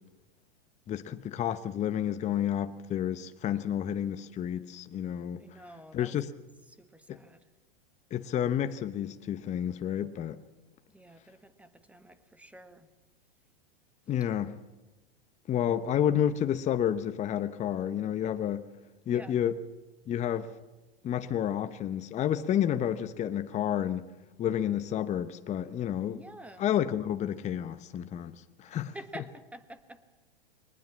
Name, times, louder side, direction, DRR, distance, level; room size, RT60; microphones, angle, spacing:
voice 1, 0.9-5.4 5.9-6.3 7.1-7.2 8.1-10.4 14.1-14.5 15.5-18.7 19.1-19.6 20.1-20.5 21.0-24.1 24.4-26.2 26.6-28.9, left 10 dB, 25° left, 0.9 m, -30 dB
voice 2, 5.4-6.1 6.7-7.4 10.9-12.9 15.7-15.8 19.1-19.3 26.1-26.7 28.7-30.0, right 1 dB, 5° right, 1.5 m, -48 dB
23.0 x 19.5 x 7.4 m
hypercardioid pair, 115°, 30 cm